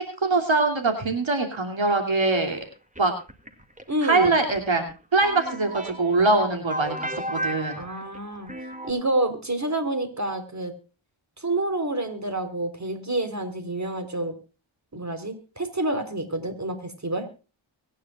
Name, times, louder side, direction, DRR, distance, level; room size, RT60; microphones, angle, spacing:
voice 1, 0.2-2.6 3.0-3.1 4.0-4.9 5.1-7.8, right 3 dB, 70° right, 4 dB, 2.9 m, -23 dB
sound 1, 2.5-8.9, right 1 dB, 15° right, 2.3 m, -35 dB
voice 2, 3.9-4.3 7.8-8.5 8.8-10.7 11.4-14.4 14.9-17.3, right 2 dB, 35° right, 7 dB, 3.8 m, -28 dB
24.5 x 10.0 x 2.4 m, 0.33 s
cardioid pair, 45°, 47 cm